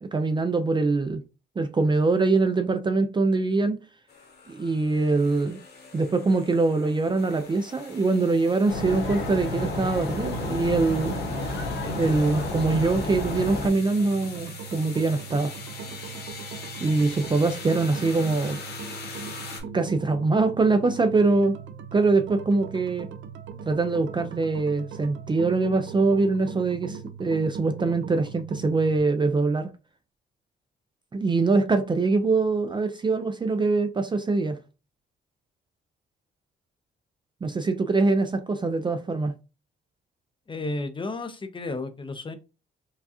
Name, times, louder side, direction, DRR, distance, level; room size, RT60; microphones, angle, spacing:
voice 1, 0.0-1.2 1.6-3.8 4.5-5.6 5.9-11.2 11.9-15.5 16.8-18.6 19.7-21.6 21.9-23.1 23.7-29.7 31.1-34.6 37.4-39.3, right 3 dB, 25° right, 0.4 m, -23 dB
sound 1, 4.1-19.6, left 5 dB, 55° left, 1.4 m, -43 dB
sound 2, 8.7-13.7, left 2 dB, 70° left, 1.3 m, -30 dB
sound 3, 13.6-29.0, right 6 dB, 70° right, 0.6 m, -40 dB
voice 2, 40.5-42.4, left 2 dB, 25° left, 0.6 m, -32 dB
4.7 x 2.3 x 2.7 m
cardioid pair, 90°, 20 cm